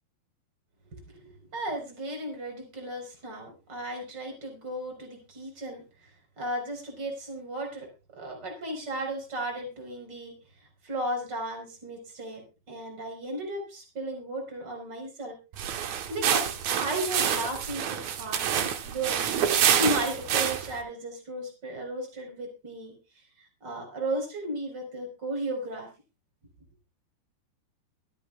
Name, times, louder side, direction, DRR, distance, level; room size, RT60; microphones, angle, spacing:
voice 1, 0.9-6.1 6.4-10.4 10.8-12.4 12.7-15.4 15.9-19.2 19.8-22.9 23.4-25.9, right 1 dB, 25° right, 2 dB, 4.8 m, -35 dB
sound 1, 15.5-20.8, right 9 dB, 75° right, 1.6 m, -27 dB
24.0 x 8.7 x 2.4 m, 0.30 s
omnidirectional pair, 5.0 m